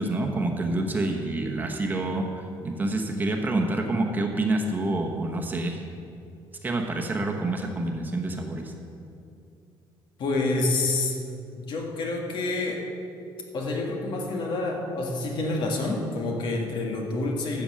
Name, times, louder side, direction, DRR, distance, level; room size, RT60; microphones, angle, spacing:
voice 1, 0.0-5.8 6.6-8.7, right 2 dB, 20° right, 2 dB, 1.1 m, -27 dB
voice 2, 10.2-11.2 11.5-12.9 13.5-17.6, left 2 dB, 60° left, 1 dB, 1.9 m, -28 dB
12.5 x 7.0 x 7.5 m, 2.6 s
cardioid pair, 160°, 9 cm